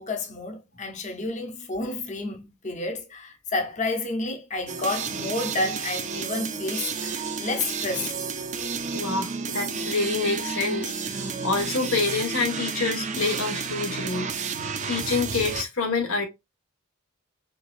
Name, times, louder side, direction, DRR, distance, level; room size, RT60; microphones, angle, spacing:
voice 1, 0.0-8.2, left 2 dB, 35° left, 0.7 m, -30 dB
sound 1, 4.7-15.6, right 5 dB, 35° right, 0.4 m, -31 dB
voice 2, 8.9-14.3 14.9-16.3, left 4 dB, 80° left, 1.3 m, -27 dB
4.5 x 2.5 x 2.4 m
head